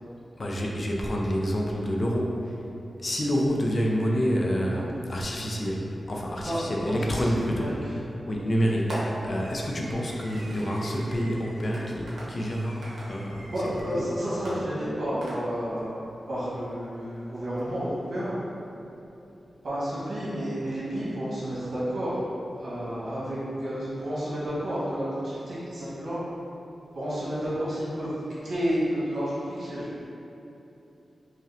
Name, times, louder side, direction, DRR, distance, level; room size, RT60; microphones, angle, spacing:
voice 1, 0.4-2.5 3.0-8.0 8.3-13.5 13.9-14.0, equal, 35° left, -2 dB, 0.4 m, -28 dB
voice 2, 6.8-7.7 8.2-8.4 13.5-16.0 16.3-18.3 19.6-22.3 22.6-26.2 26.9-29.9, equal, 70° right, -10 dB, 1.2 m, -31 dB
Fireworks, 7.4-7.8 8.9-13.9 14.5-15.8, equal, 85° right, 0.7 m, -41 dB
5.0 x 2.1 x 2.6 m, 3.0 s
wide cardioid pair, 150°, 0 cm